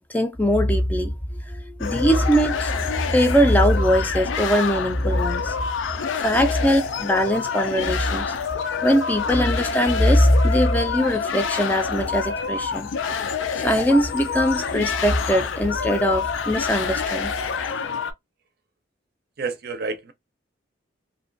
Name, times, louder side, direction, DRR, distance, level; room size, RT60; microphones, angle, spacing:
voice 1, 0.1-1.2 1.5-5.5 6.2-8.3 8.8-12.9 13.6-17.3, equal, 10° left, 0.3 m, -21 dB
sound 1, 1.8-18.1, left 6 dB, 90° left, 0.4 m, -27 dB
voice 2, 19.4-20.1, right 4 dB, 55° right, 0.5 m, -29 dB
2.5 x 2.2 x 2.5 m
head